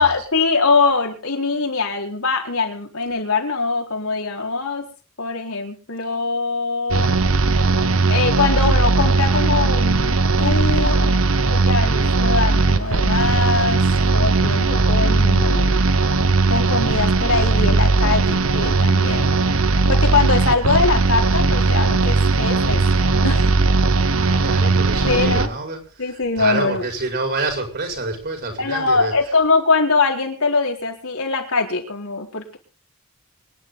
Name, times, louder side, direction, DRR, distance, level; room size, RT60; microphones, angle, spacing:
voice 1, 0.0-4.8 5.2-7.1 8.1-11.1 11.5-15.8 16.5-19.4 19.9-22.8 23.2-23.6 25.0-25.5 26.0-26.8 28.6-32.6, left 4 dB, 75° left, 1 dB, 4.4 m, -22 dB
sound 1, 6.9-25.5, right 3 dB, 75° right, 1.2 m, -18 dB
voice 2, 24.2-25.8 26.1-29.1, right 3 dB, 50° right, 4 dB, 5.6 m, -27 dB
25.0 x 10.5 x 4.0 m, 0.36 s
head